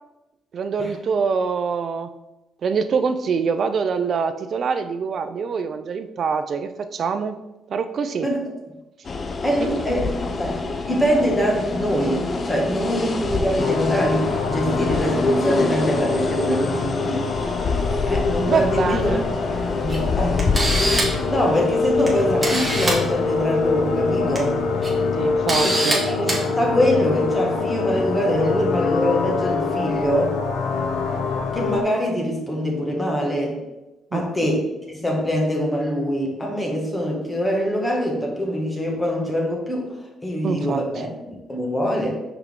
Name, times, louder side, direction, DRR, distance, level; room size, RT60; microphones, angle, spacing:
voice 1, 0.5-2.1 2.6-7.4 7.7-8.3 9.6-9.7 18.5-19.2 25.1-26.0 34.1-34.5 40.4-40.8, right 5 dB, 55° right, 10 dB, 0.4 m, -24 dB
sound 1, 9.0-25.6, left 3 dB, 40° left, 0.6 m, -26 dB
voice 2, 9.4-10.6 10.9-17.3 18.1-19.2 19.5-20.4 21.3-24.6 25.6-30.3 31.5-33.6 34.1-42.1, equal, 15° left, -1 dB, 1.7 m, -24 dB
sound 2, 13.6-31.8, left 4 dB, 85° left, 0.6 m, -25 dB
Camera, 19.9-20.0 20.4-21.2 22.1-22.2 22.4-23.0 24.1-24.4 24.8-24.9 25.5-26.0 26.3-26.4, right 1 dB, 15° right, 1.8 m, -23 dB
5.8 x 4.5 x 3.6 m, 0.99 s
cardioid pair, 90°, 0 cm